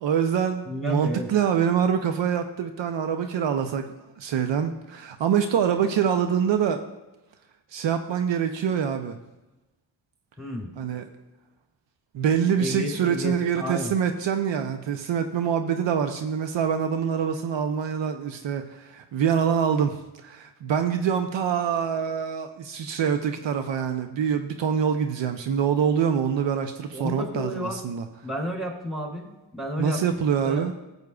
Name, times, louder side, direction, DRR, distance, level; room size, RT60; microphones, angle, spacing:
voice 1, 0.0-6.8 7.7-9.2 10.8-11.1 12.1-28.0 29.8-30.7, right 7 dB, 70° right, 7 dB, 0.8 m, -25 dB
voice 2, 0.6-1.3 10.4-10.7 12.6-13.9 26.9-27.8 28.2-30.0 30.4-30.6, left 1 dB, ahead, -1 dB, 3.2 m, -31 dB
13.5 x 8.2 x 2.4 m, 1.0 s
cardioid pair, 60°, 46 cm